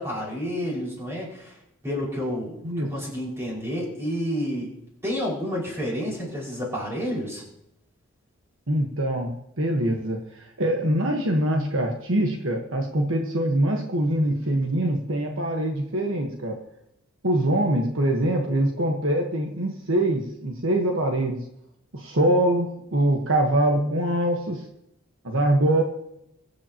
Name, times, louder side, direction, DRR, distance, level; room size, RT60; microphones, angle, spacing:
voice 1, 0.0-1.6 1.8-4.7 5.0-7.4, equal, 10° right, -5 dB, 5.6 m, -30 dB
voice 2, 8.7-9.3 9.6-16.6 17.2-21.4 21.9-24.6 25.2-25.8, right 1 dB, 65° right, 2 dB, 1.4 m, -23 dB
23.5 x 8.4 x 3.0 m, 0.79 s
head